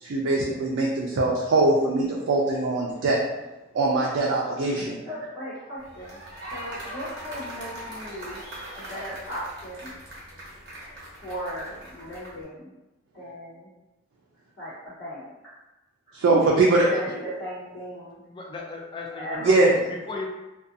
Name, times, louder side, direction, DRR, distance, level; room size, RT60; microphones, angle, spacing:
voice 1, 0.0-3.2 3.7-5.0 16.2-16.8 19.4-19.7, right 2 dB, 80° right, -3 dB, 0.4 m, -22 dB
voice 2, 5.1-6.2 6.5-9.9 11.2-12.7 13.1-13.7 14.6-15.6 16.1-18.2 19.2-19.5, equal, 70° left, -10 dB, 1.1 m, -37 dB
sound 1, 5.8-12.4, right 1 dB, 55° right, 0.9 m, -41 dB
voice 3, 18.2-20.3, left 3 dB, 25° left, 0 dB, 0.3 m, -35 dB
2.6 x 2.2 x 2.5 m, 1.0 s
head